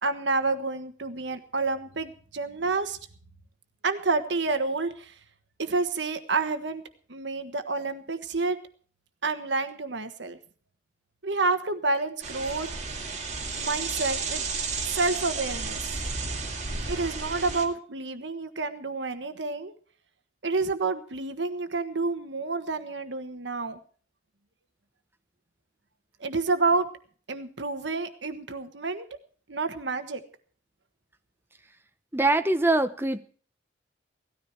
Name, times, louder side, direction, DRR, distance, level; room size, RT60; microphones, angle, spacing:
voice 1, 0.0-3.0 3.8-5.1 5.6-6.8 7.1-8.6 9.2-10.4 11.2-12.7 13.6-14.4 14.8-16.0 16.9-19.7 20.4-23.8 26.2-26.9 27.3-29.1 29.5-30.2, right 3 dB, 70° right, 8 dB, 1.3 m, -29 dB
sound 1, 12.2-17.7, right 4 dB, 40° right, 2.4 m, -32 dB
voice 2, 32.1-33.2, right 2 dB, 10° right, 9 dB, 0.9 m, -23 dB
17.5 x 13.5 x 4.5 m, 0.44 s
head